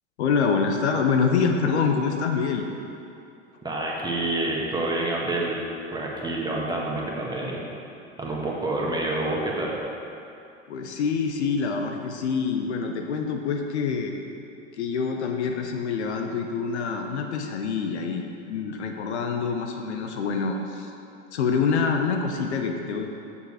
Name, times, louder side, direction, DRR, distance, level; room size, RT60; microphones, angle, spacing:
voice 1, 0.2-2.7 10.7-14.2 14.8-20.9 21.3-23.1, left 5 dB, 65° left, 3 dB, 0.8 m, -26 dB
voice 2, 3.6-5.6 5.9-7.6 8.2-9.7, right 2 dB, 10° right, -3 dB, 1.5 m, -27 dB
7.0 x 6.9 x 4.9 m, 2.7 s
figure-of-eight pair, 75°, 35 cm